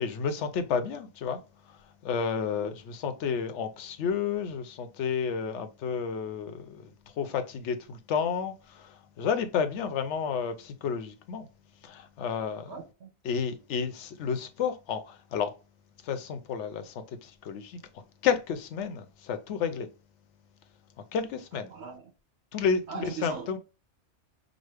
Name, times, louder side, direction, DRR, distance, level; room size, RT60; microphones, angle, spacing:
voice 1, 0.0-1.4 1.7-11.5 11.8-12.7 13.2-15.5 16.0-17.8 18.2-19.9 21.1-21.7 22.5-23.6, left 6 dB, 85° left, 1.0 m, -31 dB
voice 2, 12.7-13.1 21.7-22.0 22.9-23.6, right 5 dB, 75° right, 1.3 m, -40 dB
5.0 x 2.0 x 3.3 m
omnidirectional pair, 1.2 m